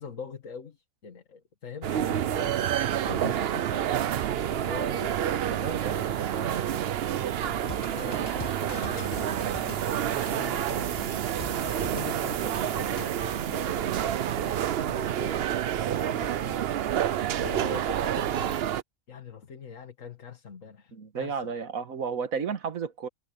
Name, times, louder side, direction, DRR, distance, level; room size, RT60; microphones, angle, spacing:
voice 1, 0.0-2.7 3.0-4.1 4.4-5.2 5.8-6.8 7.1-11.3 11.8-16.6 17.3-18.6 19.1-21.5, left 5 dB, 70° left, 2.2 m, -43 dB
sound 1, 1.8-18.8, right 10 dB, 60° right, 0.7 m, -28 dB
voice 2, 5.5-6.0 20.9-23.1, right 6 dB, 90° right, 1.8 m, -32 dB
sound 2, 7.6-13.2, left 4 dB, 25° left, 0.6 m, -42 dB
omnidirectional pair, 1.4 m